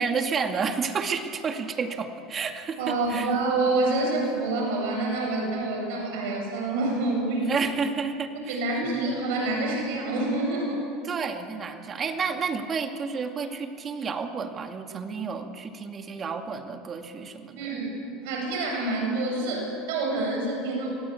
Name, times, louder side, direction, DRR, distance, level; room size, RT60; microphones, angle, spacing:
voice 1, 0.0-3.3 7.4-8.6 11.0-17.8, right 5 dB, 35° right, 5 dB, 2.2 m, -30 dB
voice 2, 2.8-7.6 8.4-10.8 17.5-17.9 18.2-20.9, right 2 dB, 80° right, 0 dB, 7.9 m, -27 dB
25.0 x 18.0 x 8.5 m, 2.7 s
supercardioid pair, 100°, 0 cm